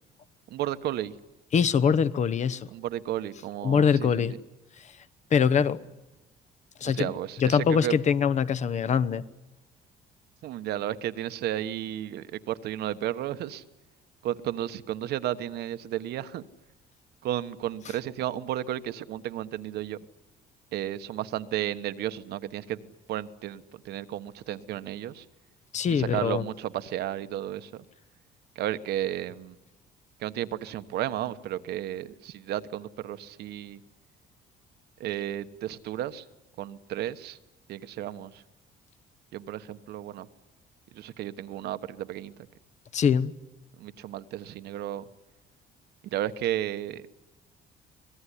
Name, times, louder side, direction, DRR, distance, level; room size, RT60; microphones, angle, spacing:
voice 1, 0.5-1.1 2.7-4.4 6.8-7.9 10.4-13.6 14.2-16.4 17.2-20.0 20.7-25.3 25.9-27.8 28.5-29.6 30.2-33.8 35.0-36.3 36.6-37.4 37.7-38.4 39.3-40.3 40.9-42.3 43.8-45.0 46.0-47.0, right 12 dB, 75° right, 1.2 m, -33 dB
voice 2, 1.5-2.7 3.6-4.3 4.8-4.9 5.3-5.8 6.8-7.1 7.4-9.2 25.7-26.5 42.9-43.3, left 7 dB, 45° left, 1.0 m, -23 dB
25.0 x 19.0 x 10.0 m
cardioid pair, 110°, 17 cm